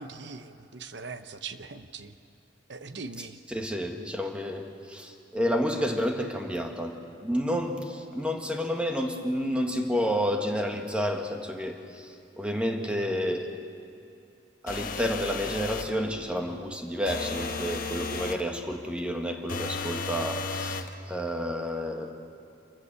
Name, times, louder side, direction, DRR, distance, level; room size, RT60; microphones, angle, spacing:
voice 1, 0.0-2.1 2.7-3.4, right 4 dB, 60° right, 10 dB, 0.9 m, -41 dB
voice 2, 3.5-13.5 14.6-22.1, equal, 5° right, 3 dB, 1.6 m, -30 dB
sound 1, 14.7-16.0 17.1-18.5 19.5-20.9, left 4 dB, 50° left, 1.1 m, -34 dB
27.5 x 15.0 x 6.9 m, 2.6 s
head